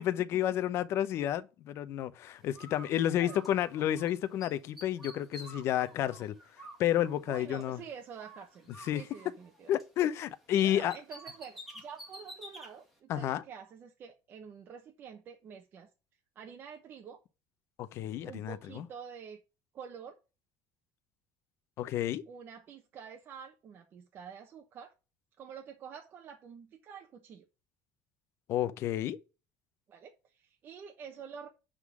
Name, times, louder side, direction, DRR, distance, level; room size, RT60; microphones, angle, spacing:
voice 1, 0.0-6.3 6.8-7.8 8.8-9.0 9.7-11.0 13.1-13.4 17.8-18.9 21.8-22.2 28.5-29.2, left 11 dB, 45° left, 0.7 m, -31 dB
Bird, 2.5-4.1 4.4-7.8 8.2-10.3 10.6-12.7, equal, ahead, 2.0 m, -50 dB
voice 2, 7.3-9.7 10.6-15.9 16.3-17.2 18.2-19.4 19.7-20.2 22.3-24.9 25.4-27.4 29.9-31.5, right 7 dB, 35° right, 0.9 m, -48 dB
9.8 x 3.8 x 6.0 m
cardioid pair, 170°, 6 cm